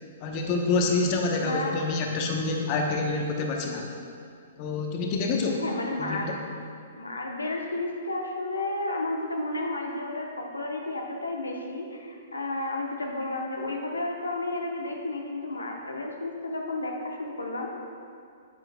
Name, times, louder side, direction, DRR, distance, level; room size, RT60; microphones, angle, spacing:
voice 1, 0.2-3.9 4.6-5.5 6.0-6.4, left 3 dB, 40° left, 1 dB, 0.9 m, -27 dB
voice 2, 1.4-1.8 5.6-6.4 7.0-17.7, left 2 dB, 85° left, 0 dB, 0.9 m, -32 dB
9.3 x 7.8 x 2.3 m, 2.3 s
figure-of-eight pair, 120°, 0 cm